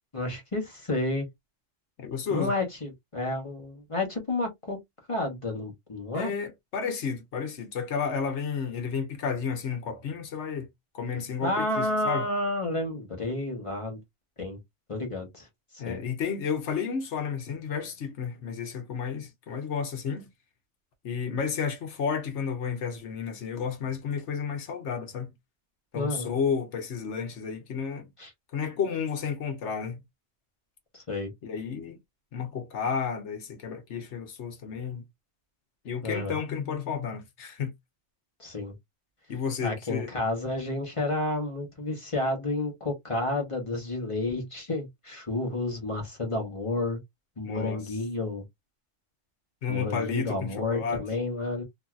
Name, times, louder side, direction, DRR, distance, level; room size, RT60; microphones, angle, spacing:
voice 1, 0.1-1.3 2.3-4.8 5.1-6.3 11.4-14.0 14.4-14.6 14.9-15.5 15.8-16.0 25.9-26.4 28.2-28.3 30.9-31.3 36.0-36.4 38.4-38.7 39.6-47.0 47.4-48.4 49.7-51.6, left 2 dB, 25° left, 1.0 m, -30 dB
voice 2, 2.0-2.5 6.1-10.7 10.9-12.3 15.8-20.3 21.0-25.3 25.9-28.1 28.5-30.0 31.4-32.0 32.3-35.0 35.8-37.7 39.3-40.1 47.4-47.8 49.6-51.0, left 6 dB, 65° left, 1.1 m, -32 dB
3.0 x 2.7 x 2.3 m
omnidirectional pair, 1.3 m